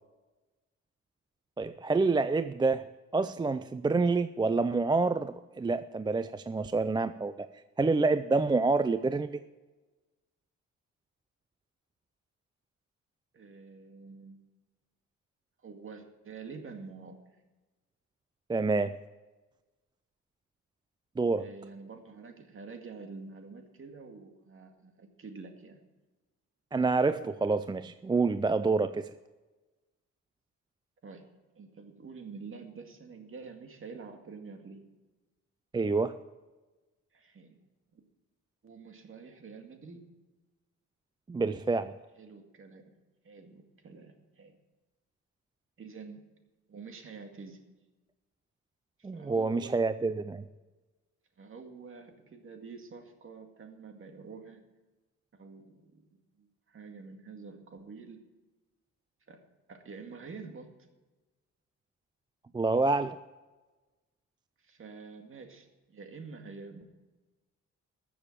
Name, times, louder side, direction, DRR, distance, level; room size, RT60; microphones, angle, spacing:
voice 1, 1.6-7.5 7.8-9.4 18.5-19.0 21.2-21.5 26.7-29.1 35.7-36.2 41.3-42.0 49.0-50.4 62.5-63.2, right 3 dB, 15° right, 12 dB, 0.4 m, -28 dB
voice 2, 13.3-14.4 15.6-17.2 21.4-25.8 31.0-34.9 37.1-37.6 37.9-38.0 38.6-40.0 42.2-42.9 43.2-44.6 45.8-46.2 46.7-47.6 49.0-49.8 51.4-54.6 55.3-58.2 59.3-59.4 59.7-60.8 64.6-66.9, right 4 dB, 45° right, 5 dB, 2.1 m, -47 dB
14.0 x 7.1 x 7.3 m, 1.2 s
cardioid pair, 90°, 30 cm